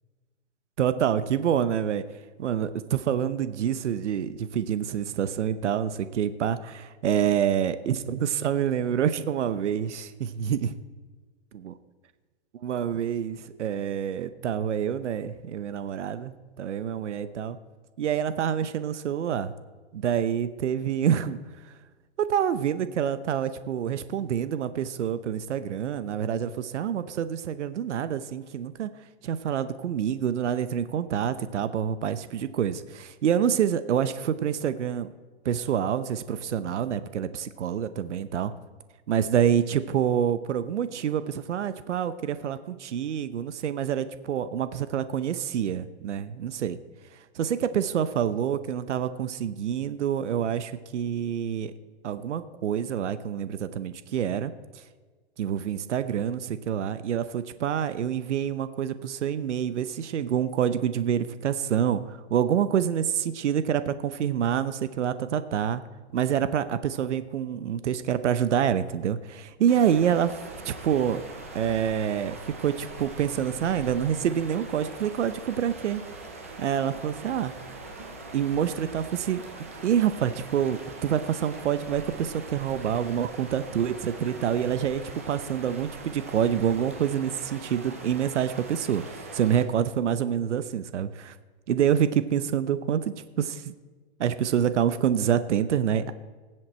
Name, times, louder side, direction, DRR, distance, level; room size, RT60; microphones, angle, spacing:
voice 1, 0.8-2.0 2.4-10.7 11.5-11.7 12.6-17.6 18.0-19.5 19.9-21.4 22.3-28.9 29.2-35.1 35.4-38.5 39.1-46.8 47.4-51.7 52.0-54.5 55.4-65.8 66.1-71.2 71.5-76.0 76.6-77.5 78.3-79.4 79.8-91.3 91.7-93.7 94.2-96.1, right 9 dB, 80° right, 13 dB, 0.9 m, -27 dB
sound 1, 69.7-89.6, right 3 dB, 15° right, 0.4 m, -42 dB
19.0 x 7.8 x 4.3 m, 1.4 s
hypercardioid pair, 175°, 35 cm